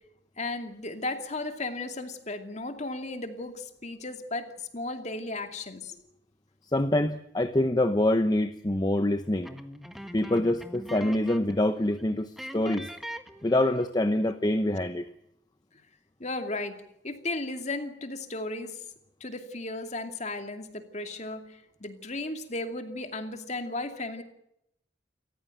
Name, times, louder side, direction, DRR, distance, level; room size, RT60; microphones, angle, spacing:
voice 1, 0.4-6.0 16.2-18.8 19.2-24.2, left 2 dB, 40° left, 6 dB, 2.5 m, -35 dB
voice 2, 6.7-9.5 10.1-12.9 13.4-15.1, left 1 dB, 20° left, 9 dB, 0.8 m, -25 dB
sound 1, 9.4-11.6 11.9-12.0 12.4-14.0, equal, ahead, 1.6 m, -42 dB
28.5 x 15.0 x 9.2 m, 0.77 s
head